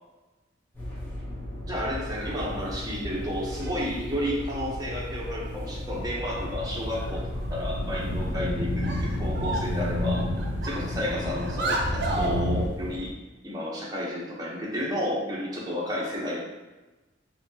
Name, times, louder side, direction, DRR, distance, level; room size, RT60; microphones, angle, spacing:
sound 1, 0.7-13.1, left 1 dB, 10° left, 0.9 m, -36 dB
voice 1, 1.6-10.3 10.6-13.1 13.4-16.5, equal, 20° right, -5 dB, 0.8 m, -32 dB
sound 2, 2.1-2.5 3.6-4.4 5.6-5.7 6.1-6.2 6.6-6.7 6.9-7.6 8.2-8.4 8.8-9.8 10.1-12.4, right 2 dB, 60° right, 0.6 m, -33 dB
sound 3, 6.0-12.7, left 1 dB, 50° left, 0.5 m, -31 dB
4.1 x 2.9 x 2.8 m, 1.2 s
head